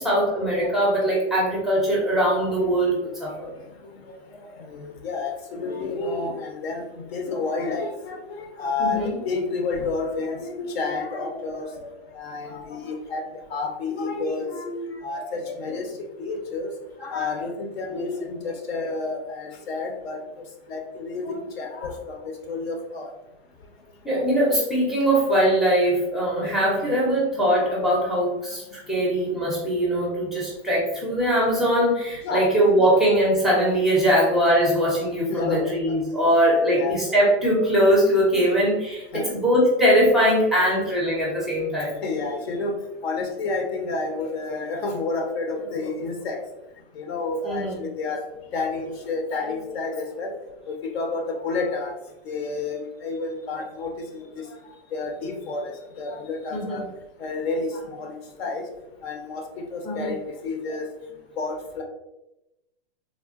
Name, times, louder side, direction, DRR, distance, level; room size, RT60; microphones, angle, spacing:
voice 1, 0.0-3.5 8.8-9.1 24.0-42.0 47.4-47.8 56.5-56.8 59.8-60.1, equal, ahead, -5 dB, 0.5 m, -21 dB
voice 2, 4.1-6.8 7.1-11.9 12.1-16.7 17.0-20.2 20.7-22.2 22.5-23.1 26.4-26.9 27.6-27.8 32.2-33.0 35.3-36.4 36.7-37.2 39.1-39.3 42.0-42.7 43.0-46.4 47.0-48.2 48.5-50.3 50.7-51.9 52.2-54.5 54.9-56.8 57.2-58.6 59.0-60.2 60.4-60.9 61.4-61.8, left 3 dB, 65° left, 3 dB, 0.8 m, -30 dB
3.6 x 2.1 x 2.4 m, 0.93 s
hypercardioid pair, 145°, 33 cm